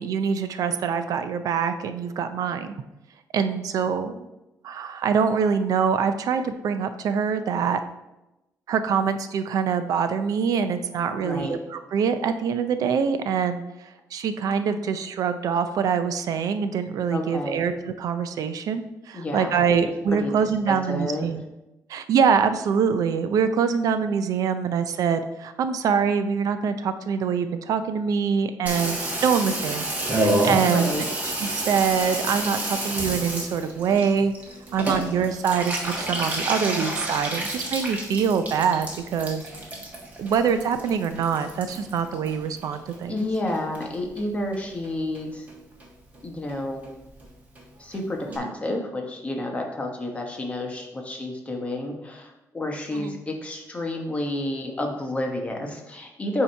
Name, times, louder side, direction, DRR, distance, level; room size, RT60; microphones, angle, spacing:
voice 1, 0.0-2.8 3.3-4.1 4.6-7.8 8.7-13.6 14.1-21.4 21.9-29.9 30.1-31.0 31.4-34.3 34.7-39.4 40.2-43.2 48.3-48.5 52.9-53.2, right 6 dB, 70° right, 9 dB, 0.4 m, -24 dB
voice 2, 11.1-11.6 17.1-17.6 19.1-19.5 20.1-20.3 20.7-21.3 30.6-31.0 43.1-45.5 46.2-46.8 47.8-56.4, left 1 dB, 20° left, 2 dB, 1.1 m, -30 dB
Water tap faucet / Bathtub (filling or washing), 28.7-43.2 43.5-44.2 44.5-44.6 44.8-44.9 45.1-45.5 45.8-45.9 46.1-46.2 46.5-46.6 46.8-46.9 47.2-47.3 47.6-47.7 47.9-48.0 48.3-48.4, right 1 dB, 25° right, 1.2 m, -30 dB
8.2 x 2.8 x 4.5 m, 0.96 s
cardioid pair, 125°, 6 cm